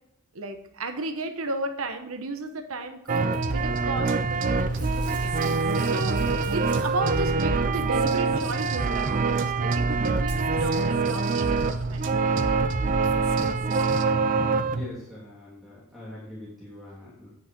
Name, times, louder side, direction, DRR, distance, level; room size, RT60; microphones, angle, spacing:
voice 1, 0.3-5.6 5.8-12.4, right 2 dB, 75° right, 7 dB, 1.0 m, -34 dB
Packing tape duct tape / Tearing, 3.0-3.5 4.7-7.3 8.4-8.5 9.4-9.5 10.2-10.4 11.1-11.2, right 2 dB, 20° right, 1.8 m, -48 dB
sound 1, 3.1-14.9, right 4 dB, 40° right, 0.5 m, -25 dB
sound 2, 3.4-14.0, right 2 dB, 60° right, 0.9 m, -34 dB
voice 2, 14.7-17.3, left 1 dB, ahead, -10 dB, 3.0 m, -42 dB
9.9 x 6.4 x 5.3 m, 0.79 s
head